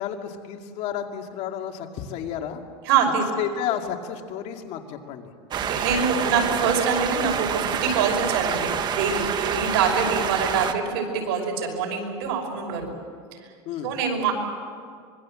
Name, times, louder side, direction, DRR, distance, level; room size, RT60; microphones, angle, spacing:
voice 1, 0.0-2.6 3.4-5.3 13.7-13.9, left 9 dB, 50° left, 4 dB, 2.3 m, -31 dB
voice 2, 2.8-3.3 5.7-12.9 13.4-13.5 13.8-14.3, right 6 dB, 70° right, 2 dB, 5.7 m, -25 dB
sound 1, 5.5-10.7, right 8 dB, 30° right, 1.3 m, -27 dB
25.0 x 22.5 x 7.7 m, 2.1 s
supercardioid pair, 140°, 14 cm